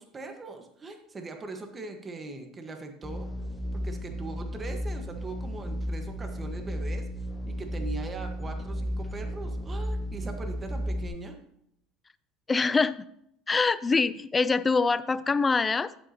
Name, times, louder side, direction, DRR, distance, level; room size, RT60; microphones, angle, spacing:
voice 1, 0.0-3.3 3.7-7.1 7.5-11.4, right 3 dB, 25° right, 5 dB, 1.3 m, -40 dB
sound 1, 3.0-11.1, equal, 5° right, 0.7 m, -34 dB
voice 2, 12.5-13.0 13.5-15.9, left 4 dB, 20° left, 16 dB, 0.4 m, -24 dB
11.0 x 7.7 x 2.8 m, 0.75 s
supercardioid pair, 120°, 0 cm